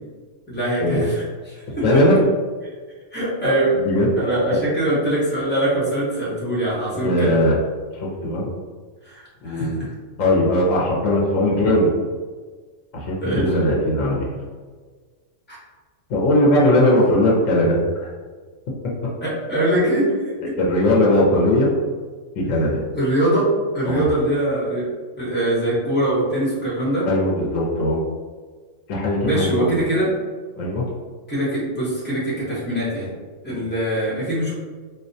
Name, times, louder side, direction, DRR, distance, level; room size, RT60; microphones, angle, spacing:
voice 1, 0.5-2.0 3.1-3.7 4.2-7.4 9.0-9.9 13.2-13.5 15.5-15.6 17.0-17.1 19.2-20.1 22.9-23.5 23.7-24.9 25.2-27.1 29.2-30.1 31.3-33.1 33.4-34.5, right 1 dB, 10° left, -8 dB, 0.9 m, -22 dB
voice 2, 1.8-2.2 3.8-4.1 6.9-7.6 7.9-8.5 9.4-9.8 10.2-11.9 12.9-14.2 16.1-18.1 20.6-21.7 22.3-22.8 23.9-24.1 27.1-28.0 28.9-29.7 30.6-30.9 33.5-33.7, left 1 dB, 85° left, -3 dB, 1.1 m, -19 dB
4.0 x 2.2 x 2.6 m, 1.5 s
omnidirectional pair, 1.3 m